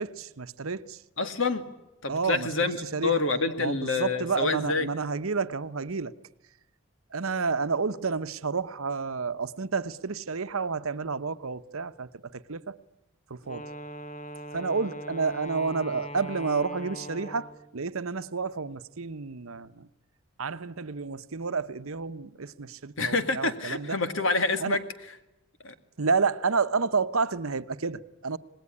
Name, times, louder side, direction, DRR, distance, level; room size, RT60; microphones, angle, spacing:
voice 1, 0.0-1.0 2.1-3.2 3.6-6.1 7.1-12.8 13.3-13.7 14.5-19.9 20.4-24.0 24.6-24.8 26.0-28.4, right 4 dB, 80° right, 0.9 m, -30 dB
voice 2, 1.2-1.6 2.0-2.8 3.0-4.9 23.0-24.8 25.6-25.7, left 3 dB, 65° left, 2.1 m, -27 dB
Wind instrument woodwind instrument, 13.4-17.8, equal, 35° left, 1.1 m, -41 dB
26.5 x 20.0 x 9.9 m
head